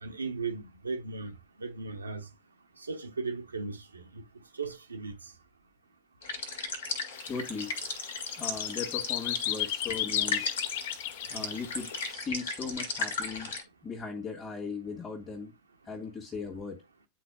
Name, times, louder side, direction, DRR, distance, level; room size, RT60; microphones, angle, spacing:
voice 1, 0.0-1.3 1.6-2.3 2.9-4.0 4.6-5.1, right 4 dB, 75° right, 0.8 m, -36 dB
sound 1, 6.2-13.6, left 4 dB, 65° left, 1.8 m, -36 dB
sound 2, 7.2-7.4 7.7-12.1, left 13 dB, 50° left, 0.4 m, -35 dB
voice 2, 7.3-7.8 8.4-10.5 11.3-13.5 13.8-15.5 15.8-16.8, left 4 dB, 20° left, 1.6 m, -38 dB
10.5 x 4.2 x 2.3 m
figure-of-eight pair, 90°, 0 cm